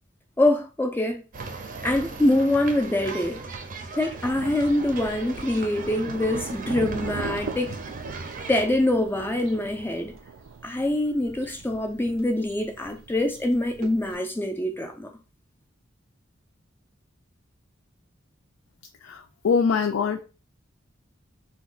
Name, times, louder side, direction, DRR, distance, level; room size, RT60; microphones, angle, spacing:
voice 1, 0.4-1.2 1.8-3.4 3.9-7.7 8.5-10.1 10.6-15.1, left 1 dB, 10° left, 0.3 m, -24 dB
sound 1, 1.3-8.6, right 3 dB, 45° right, 0.6 m, -38 dB
Thunder, 4.2-14.1, right 4 dB, 90° right, 0.5 m, -40 dB
voice 2, 19.0-20.2, left 5 dB, 85° left, 0.4 m, -23 dB
2.8 x 2.2 x 3.9 m
head